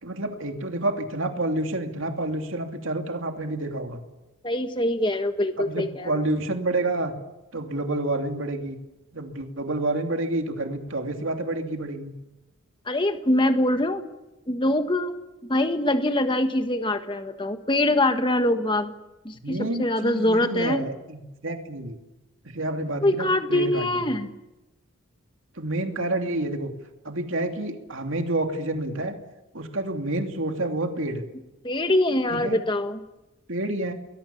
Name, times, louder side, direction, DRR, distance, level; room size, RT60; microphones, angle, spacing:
voice 1, 0.0-4.0 5.6-7.1 7.5-8.8 9.1-12.1 19.3-22.0 22.5-23.9 25.6-26.7 27.0-29.1 29.5-31.2 32.3-32.6 33.5-33.9, right 2 dB, 65° right, 4 dB, 2.9 m, -29 dB
voice 2, 4.4-6.2 12.9-14.0 14.5-15.1 15.4-18.9 19.2-20.8 23.0-24.3 31.6-33.0, left 1 dB, 20° left, 8 dB, 1.5 m, -24 dB
29.5 x 22.0 x 7.2 m, 1.0 s
head